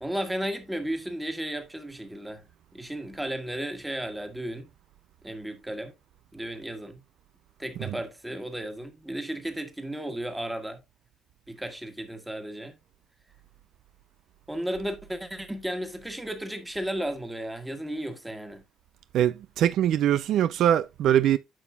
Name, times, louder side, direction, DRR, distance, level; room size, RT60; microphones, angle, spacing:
voice 1, 0.0-2.4 2.7-4.7 5.2-5.9 6.3-7.0 7.6-10.8 11.5-12.7 14.5-18.6, right 1 dB, 5° right, 1.6 m, -34 dB
voice 2, 19.1-21.4, right 11 dB, 70° right, 0.4 m, -22 dB
9.6 x 6.2 x 2.3 m
cardioid pair, 90°, 0 cm